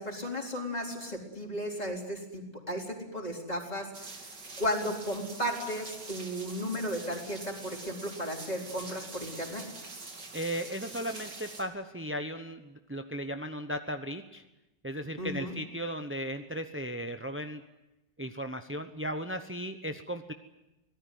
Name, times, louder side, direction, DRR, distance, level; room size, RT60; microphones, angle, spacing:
voice 1, 0.0-2.4 2.7-3.9 4.6-9.7 15.2-15.5, equal, 20° left, 1 dB, 4.2 m, -34 dB
sound 1, 3.9-11.6, right 3 dB, 70° right, 3.6 m, -45 dB
voice 2, 10.3-14.4 14.8-17.6 18.2-20.3, equal, 15° right, 7 dB, 0.5 m, -36 dB
24.5 x 18.0 x 9.4 m, 0.95 s
omnidirectional pair, 1.9 m